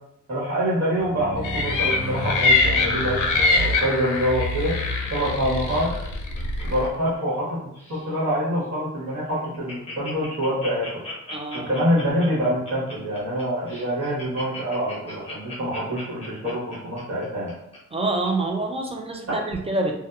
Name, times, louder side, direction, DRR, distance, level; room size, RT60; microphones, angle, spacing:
voice 1, 0.3-4.7 5.1-5.9 6.6-7.6 7.9-10.8 11.5-17.5, equal, 50° right, -9 dB, 1.3 m, -25 dB
sound 1, 1.0-4.1, right 2 dB, 85° right, 0.9 m, -33 dB
sound 2, 1.4-6.9, left 3 dB, 85° left, 0.5 m, -23 dB
Laughter, 5.9-7.5 7.8-8.1 8.6-8.7 9.0-9.1 9.3-17.8 18.2-18.3, left 1 dB, 20° left, 0.9 m, -39 dB
voice 2, 11.3-11.7 17.9-20.0, right 2 dB, 20° right, 2 dB, 0.4 m, -26 dB
2.7 x 2.2 x 2.3 m, 0.77 s
cardioid pair, 90°, 30 cm